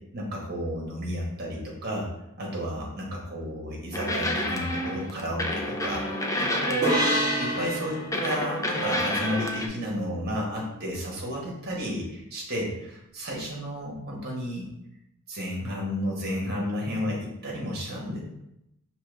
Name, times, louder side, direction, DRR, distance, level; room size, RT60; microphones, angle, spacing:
voice 1, 0.1-2.1 2.4-7.1 7.4-14.7 15.3-18.2, equal, 45° right, -3 dB, 1.3 m, -32 dB
sound 1, 3.9-7.4 8.1-9.7, left 1 dB, 15° left, 0.4 m, -29 dB
sound 2, 6.8-10.3, right 1 dB, 15° right, 1.3 m, -29 dB
5.5 x 2.9 x 3.3 m, 0.85 s
head